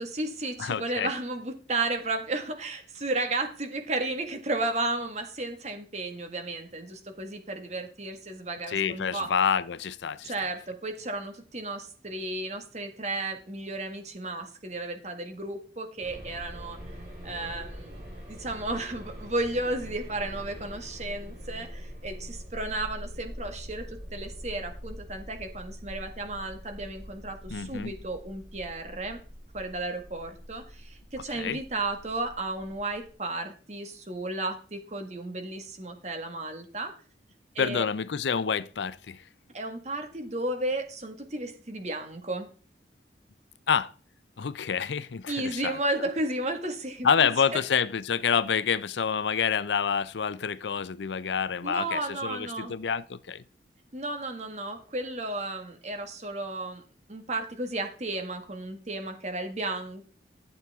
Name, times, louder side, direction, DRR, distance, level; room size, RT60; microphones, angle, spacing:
voice 1, 0.0-9.3 10.2-16.8 17.2-29.2 29.5-36.9 37.5-37.9 39.5-42.5 45.3-47.6 51.6-52.7 53.9-56.8 57.1-60.0, right 2 dB, 40° right, 1.7 m, -33 dB
voice 2, 0.6-1.1 8.7-10.3 27.5-27.9 31.3-31.6 37.6-39.2 43.7-43.9 44.4-45.8 47.0-53.4, left 6 dB, 90° left, 0.5 m, -28 dB
sound 1, 16.0-33.1, equal, 60° right, 4.6 m, -43 dB
12.0 x 8.1 x 3.6 m
head